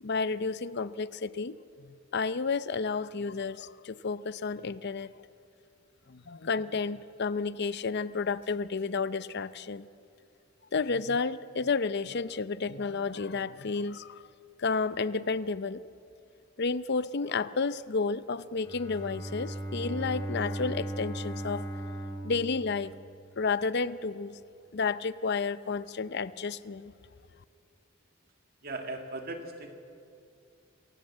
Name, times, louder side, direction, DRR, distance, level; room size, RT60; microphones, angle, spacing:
voice 1, 0.0-5.1 6.1-9.9 10.7-14.2 14.6-15.8 16.6-21.7 22.2-22.9 23.4-24.4 24.7-26.9, left 4 dB, 50° left, 16 dB, 0.6 m, -31 dB
Bowed string instrument, 18.5-23.5, right 1 dB, 20° left, 3.0 m, -37 dB
voice 2, 28.6-29.7, right 2 dB, 45° right, 5 dB, 1.9 m, -38 dB
27.5 x 15.5 x 7.4 m, 2.4 s
head